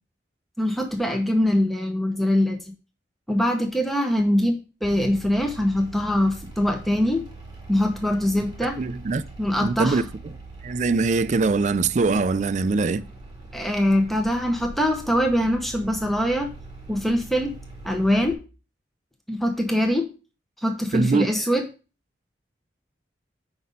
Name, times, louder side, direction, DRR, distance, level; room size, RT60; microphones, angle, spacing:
voice 1, 0.6-2.6 3.3-7.2 7.7-8.8 9.4-10.0 13.5-16.5 16.9-17.5 17.8-18.4 19.3-20.1 20.6-21.7, left 1 dB, ahead, 0.8 m, -23 dB
sound 1, 4.8-18.3, right 3 dB, 25° right, 2.5 m, -42 dB
voice 2, 8.8-9.2 9.6-10.0 10.6-13.1 20.9-21.3, right 4 dB, 40° right, 0.4 m, -22 dB
5.9 x 5.2 x 5.3 m
head